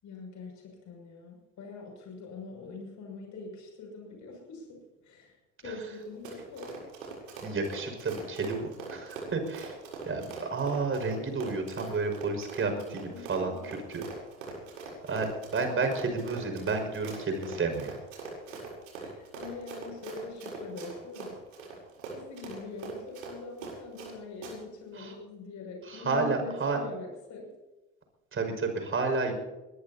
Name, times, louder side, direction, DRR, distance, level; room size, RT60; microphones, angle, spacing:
voice 1, 0.0-6.8 12.7-13.7 18.5-18.6 19.0-21.3 22.1-27.5, left 3 dB, 45° left, 0 dB, 6.6 m, -43 dB
Run, 6.0-24.1 24.4-24.5, right 4 dB, 75° right, 7.8 m, -42 dB
voice 2, 7.4-9.8 10.0-13.5 13.9-14.0 15.1-17.9 25.0-25.1 25.9-26.8 28.3-29.3, right 3 dB, 30° right, 5 dB, 5.9 m, -31 dB
22.0 x 21.5 x 2.9 m, 1.1 s
hypercardioid pair, 70°, 39 cm